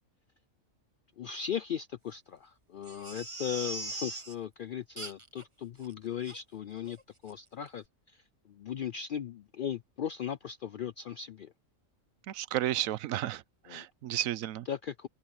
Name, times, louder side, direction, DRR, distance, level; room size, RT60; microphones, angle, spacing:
voice 1, 1.2-7.0 7.2-11.5 13.7-13.9 14.7-15.1, left 9 dB, 70° left, 0.5 m, -38 dB
Crying sobbing, 2.8-4.3 5.0-5.4 5.8-5.9 6.2-6.4 6.9-7.0 7.3-7.4, right 2 dB, 20° right, 1.6 m, -40 dB
voice 2, 12.3-13.4 13.7-14.7, right 13 dB, 85° right, 1.0 m, -32 dB
open air
omnidirectional pair, 1.4 m